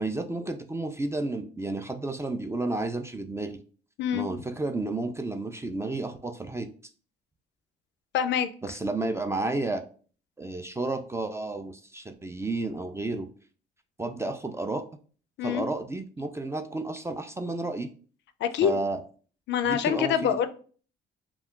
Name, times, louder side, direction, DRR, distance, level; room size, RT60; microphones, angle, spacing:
voice 1, 0.0-3.6 4.1-6.7 8.6-9.8 10.4-13.3 14.0-14.8 15.4-17.9 18.6-19.0 19.6-20.4, right 2 dB, 15° right, 7 dB, 0.3 m, -31 dB
voice 2, 8.1-8.5 15.4-15.6 18.4-18.8 19.5-20.5, left 9 dB, 65° left, 10 dB, 0.4 m, -25 dB
2.3 x 2.2 x 3.6 m, 0.41 s
cardioid pair, 90°, 21 cm